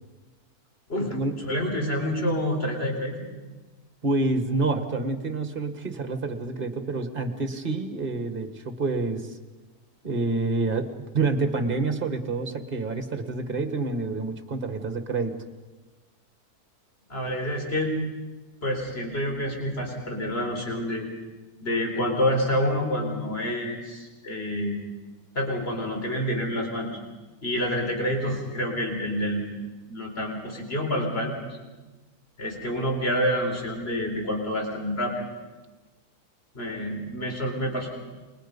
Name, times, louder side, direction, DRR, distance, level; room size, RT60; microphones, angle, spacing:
voice 1, 1.5-3.3 17.1-18.0 18.6-21.1 21.6-24.8 25.3-26.9 27.4-29.5 29.9-31.4 32.4-35.2 36.5-37.9, equal, 40° left, 1 dB, 4.5 m, -28 dB
voice 2, 4.0-9.3 10.0-15.3, right 3 dB, 35° right, 8 dB, 1.9 m, -28 dB
28.5 x 22.5 x 5.5 m, 1.2 s
omnidirectional pair, 1.6 m